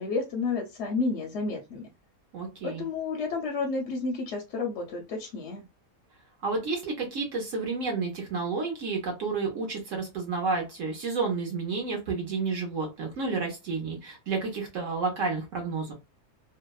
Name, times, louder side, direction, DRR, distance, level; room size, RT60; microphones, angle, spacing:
voice 1, 0.0-1.9 2.6-5.6, left 4 dB, 65° left, 2 dB, 0.7 m, -31 dB
voice 2, 2.3-2.8 6.4-15.9, right 4 dB, 65° right, 1 dB, 1.0 m, -30 dB
2.7 x 2.1 x 2.2 m, 0.26 s
omnidirectional pair, 1.6 m